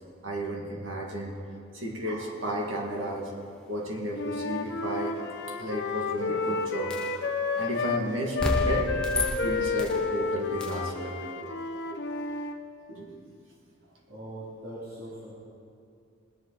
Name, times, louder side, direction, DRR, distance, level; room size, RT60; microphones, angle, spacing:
voice 1, 0.2-1.4 1.7-3.3 3.7-11.5 11.9-12.0 12.9-13.2, right 1 dB, 75° right, -1 dB, 2.0 m, -33 dB
Wind instrument woodwind instrument, 4.1-8.1 8.3-12.6, left 4 dB, 60° left, 0.8 m, -31 dB
sound 1, 6.9-7.2 8.4-10.0 10.6-10.9, left 1 dB, 5° left, 1.0 m, -31 dB
voice 2, 14.1-15.3, right 1 dB, 50° right, -9 dB, 3.1 m, -41 dB
20.0 x 10.5 x 4.0 m, 2.4 s
head